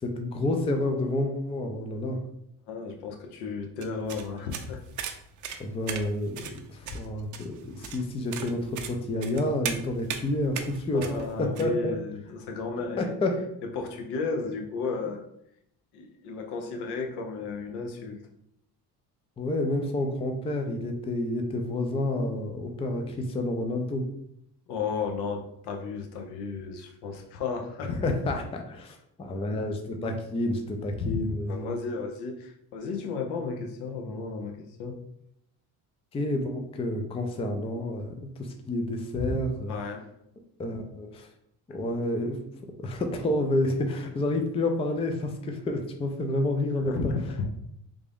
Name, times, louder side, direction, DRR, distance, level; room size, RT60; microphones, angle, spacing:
voice 1, 0.0-2.2 5.6-11.1 11.4-11.9 13.0-13.4 19.4-24.1 27.9-31.7 36.1-39.8 40.6-41.3 41.7-47.1, left 1 dB, 15° left, 4 dB, 0.4 m, -29 dB
voice 2, 2.7-4.8 10.9-13.1 13.7-15.2 15.9-18.2 24.7-28.0 31.0-31.2 31.5-35.0 39.1-39.3 39.7-40.0 46.8-47.5, left 4 dB, 75° left, 3 dB, 0.8 m, -33 dB
sound 1, 3.8-11.6, right 7 dB, 50° right, 0.5 m, -38 dB
3.4 x 2.5 x 3.4 m, 0.76 s
cardioid pair, 110°, 40 cm